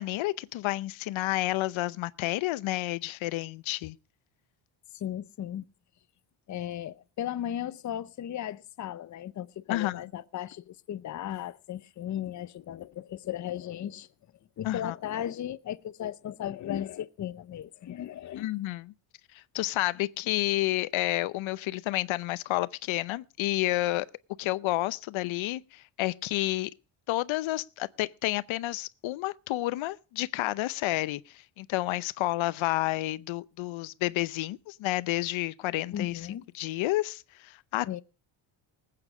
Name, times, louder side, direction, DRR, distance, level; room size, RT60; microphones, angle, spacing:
voice 1, 0.0-4.0 9.7-10.0 14.6-14.9 18.4-18.9 19.3-24.1 24.4-26.7 27.1-36.2 36.5-37.9, left 17 dB, 70° left, 0.7 m, -30 dB
voice 2, 4.9-5.6 6.5-14.1 14.6-18.5 35.9-36.4 37.9-38.0, left 11 dB, 35° left, 0.7 m, -36 dB
19.5 x 8.7 x 4.8 m
cardioid pair, 110°, 49 cm